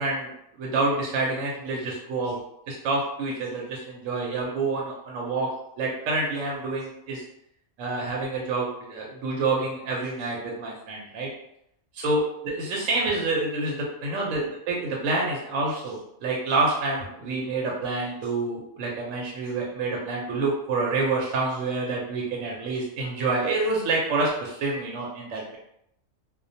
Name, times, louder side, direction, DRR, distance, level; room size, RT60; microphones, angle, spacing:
voice 1, 0.0-2.4 2.7-5.5 5.8-7.2 7.8-11.3 11.9-25.6, right 3 dB, 75° right, -3 dB, 0.9 m, -28 dB
2.3 x 2.2 x 2.6 m, 0.76 s
omnidirectional pair, 1.4 m